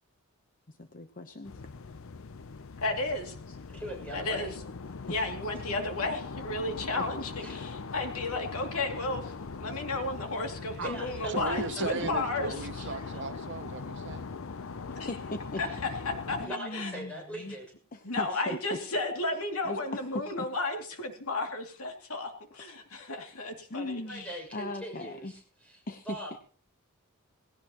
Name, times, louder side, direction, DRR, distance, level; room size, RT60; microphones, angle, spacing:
voice 1, 0.7-1.6 3.5-3.6 5.1-5.2 7.0-7.1 14.9-15.6 16.4-17.6 17.9-18.8 19.6-20.5 23.7-24.3 24.5-25.3 25.9-26.4, left 2 dB, 40° left, 7 dB, 0.9 m, -39 dB
sound 1, 1.4-16.5, left 4 dB, 65° left, 0.6 m, -41 dB
voice 2, 2.8-3.3 4.1-4.5 5.1-12.9 15.0-15.1 15.6-16.4 16.7-16.9 18.0-24.4, left 2 dB, 85° left, 3 dB, 2.6 m, -33 dB
voice 3, 3.7-4.5 7.4-7.7 10.6-11.6 12.5-12.6 13.1-13.2 15.6-15.7 16.4-17.7 18.5-18.6 24.1-25.8 26.1-26.4, right 1 dB, 5° left, -1 dB, 6.5 m, -41 dB
voice 4, 11.3-14.3, right 4 dB, 55° right, 11 dB, 0.7 m, -37 dB
19.0 x 17.0 x 3.0 m, 0.43 s
head